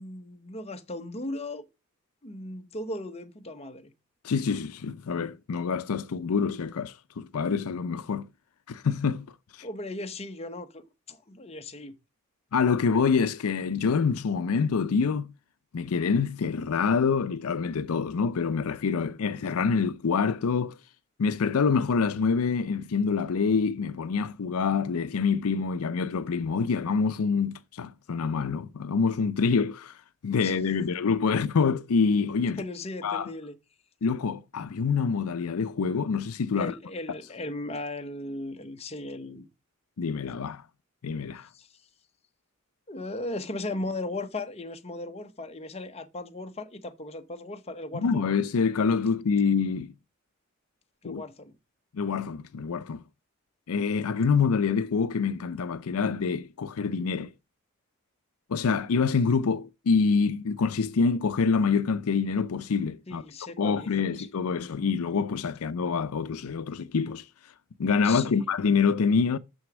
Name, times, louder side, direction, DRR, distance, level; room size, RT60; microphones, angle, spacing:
voice 1, 0.0-1.7 2.2-3.9 9.6-11.9 30.4-30.9 32.6-33.6 36.5-39.5 41.5-41.7 42.9-48.3 51.0-51.5 63.1-64.3 68.0-68.5, left 2 dB, 30° left, 0.9 m, -37 dB
voice 2, 4.2-8.3 8.7-9.3 9.6-9.7 12.5-15.3 15.7-20.8 21.2-30.0 30.2-32.6 33.0-33.3 34.0-36.8 40.0-40.6 41.0-41.5 47.9-49.9 51.0-51.2 51.9-53.0 53.7-57.3 58.5-63.2 63.6-67.3 67.8-69.4, left 5 dB, 75° left, 0.5 m, -26 dB
6.9 x 6.4 x 6.1 m
head